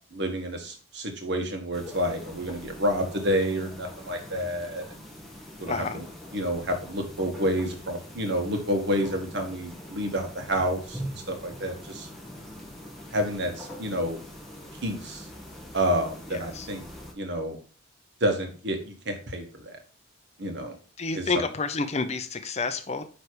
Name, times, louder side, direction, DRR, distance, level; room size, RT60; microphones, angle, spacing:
voice 1, 0.1-4.8 5.6-6.0 6.3-11.0 11.3-12.1 13.1-14.2 14.8-15.2 15.7-16.8 17.1-17.6 18.2-19.8 20.4-20.7 21.1-21.2, equal, 55° right, 4 dB, 1.6 m, -29 dB
sound 1, 1.7-17.1, equal, ahead, 1.3 m, -43 dB
voice 2, 5.6-6.0 16.3-16.7 21.0-23.0, left 4 dB, 30° left, 9 dB, 0.6 m, -29 dB
9.6 x 3.3 x 4.6 m, 0.38 s
head